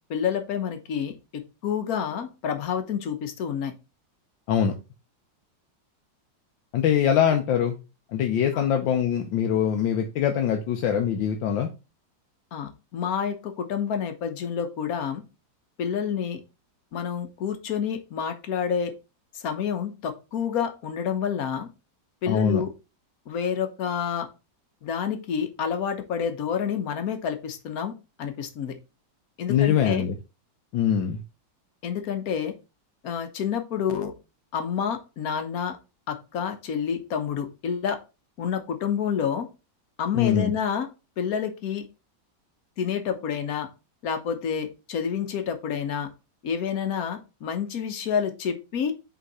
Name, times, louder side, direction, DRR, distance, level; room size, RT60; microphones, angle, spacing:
voice 1, 0.1-1.1 1.6-3.7 8.5-8.6 12.5-15.2 15.8-16.4 16.9-18.9 19.3-21.7 22.2-22.7 23.3-24.3 24.8-27.9 28.2-28.7 29.4-30.0 31.8-32.5 33.0-34.1 34.5-35.8 36.1-38.0 38.4-39.5 40.0-40.9 41.2-41.8 42.8-43.7 44.0-46.1 46.4-48.9, left 7 dB, 55° left, 7 dB, 1.3 m, -28 dB
voice 2, 6.7-7.7 8.1-11.7 22.3-22.6 29.5-30.1 30.7-31.2 40.1-40.5, left 8 dB, 90° left, 4 dB, 1.5 m, -23 dB
5.6 x 3.7 x 5.4 m, 0.30 s
omnidirectional pair, 2.0 m